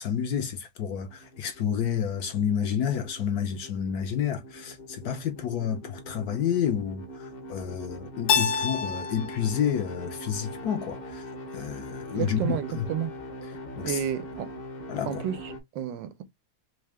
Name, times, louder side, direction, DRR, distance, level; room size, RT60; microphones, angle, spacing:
voice 1, 0.0-11.3 11.5-12.9 13.7-14.0 14.9-15.2, left 8 dB, 65° left, 1.0 m, -30 dB
sound 1, 1.1-15.6, left 1 dB, 45° left, 0.7 m, -42 dB
Keyboard (musical), 8.3-11.1, left 6 dB, 85° left, 1.5 m, -30 dB
voice 2, 12.1-13.2 13.8-14.5 15.0-16.2, right 10 dB, 80° right, 1.4 m, -31 dB
3.6 x 2.7 x 3.3 m
omnidirectional pair, 2.0 m